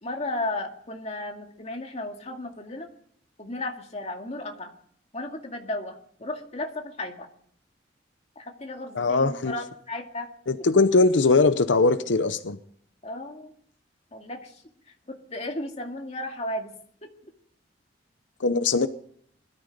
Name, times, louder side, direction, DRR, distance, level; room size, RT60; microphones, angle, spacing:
voice 1, 0.0-2.9 3.4-4.7 5.1-7.3 8.4-10.3 13.0-13.5 14.1-16.7, left 2 dB, 35° left, 2.1 m, -34 dB
voice 2, 9.0-9.5 10.5-12.6 18.4-18.9, left 3 dB, 90° left, 0.7 m, -21 dB
21.0 x 13.0 x 5.3 m
head